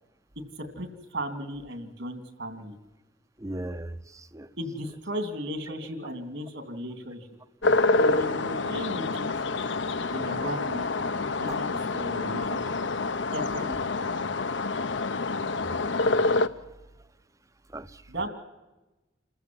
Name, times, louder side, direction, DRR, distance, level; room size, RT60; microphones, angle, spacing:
voice 1, 0.6-2.7 4.6-7.3 8.0-9.5 10.1-12.8 13.1-14.0 18.1-18.3, equal, 70° right, 8 dB, 3.0 m, -36 dB
voice 2, 3.4-4.5 11.5-11.6 15.6-16.1 17.7-18.0, right 1 dB, 15° right, 15 dB, 0.7 m, -38 dB
sound 1, 7.6-16.5, left 3 dB, 70° left, 0.9 m, -27 dB
27.5 x 14.5 x 7.8 m, 1.1 s
head